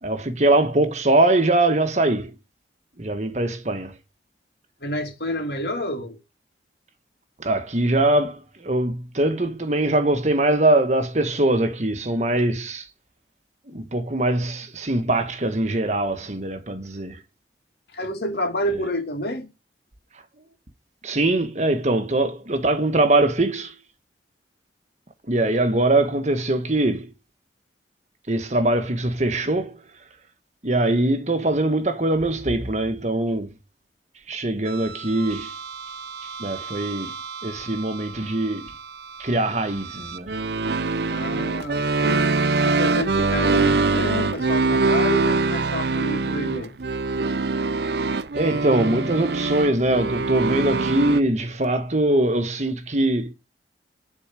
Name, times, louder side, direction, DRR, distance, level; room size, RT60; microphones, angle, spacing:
voice 1, 0.0-2.3 3.0-3.9 7.4-12.9 13.7-17.2 21.0-23.7 25.3-27.1 28.3-29.8 30.6-33.5 34.3-35.5 36.4-37.1 37.4-38.7 39.2-40.3 48.3-53.3, right 2 dB, 40° right, 1.3 m, -22 dB
voice 2, 4.8-6.2 17.9-19.5 41.1-42.2 42.6-46.7, equal, 65° left, 2.8 m, -29 dB
sound 1, 34.7-51.2, right 3 dB, 65° right, 0.6 m, -24 dB
11.0 x 4.6 x 7.4 m
head